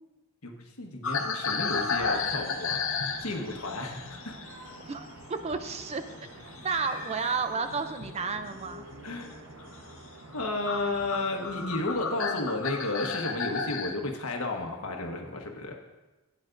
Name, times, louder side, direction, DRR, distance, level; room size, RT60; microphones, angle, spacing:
voice 1, 0.4-4.4 9.0-9.4 10.3-15.8, left 2 dB, 80° left, 2 dB, 1.3 m, -33 dB
sound 1, 1.0-5.8 6.1-8.2 8.8-9.1 9.6-9.7 10.3-10.4 10.6-13.9, left 5 dB, 60° left, 0.8 m, -33 dB
sound 2, 1.6-3.6 4.1-5.3 6.4-8.3, left 1 dB, 15° right, 2.6 m, -49 dB
sound 3, 1.8-12.6, right 1 dB, 60° right, 1.1 m, -48 dB
voice 2, 4.9-6.0 6.6-8.8, right 4 dB, 30° right, 9 dB, 0.5 m, -31 dB
13.5 x 9.1 x 2.6 m, 1.1 s
head